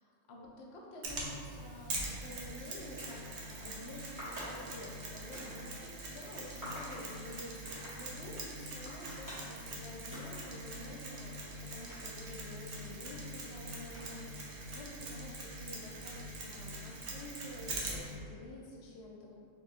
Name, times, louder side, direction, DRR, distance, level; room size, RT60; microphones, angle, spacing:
voice 1, 0.1-19.4, left 1 dB, 65° left, -2 dB, 0.8 m, -49 dB
Mechanisms, 1.0-18.1, right 2 dB, 85° right, 1.1 m, -43 dB
sound 1, 3.0-3.2 4.2-5.5 6.6-7.0 7.6-7.9 8.8-9.5 10.1-10.4 10.8-12.6 13.9-14.3, left 1 dB, 15° right, 1.4 m, -47 dB
4.5 x 3.0 x 2.4 m, 2.4 s
omnidirectional pair, 1.3 m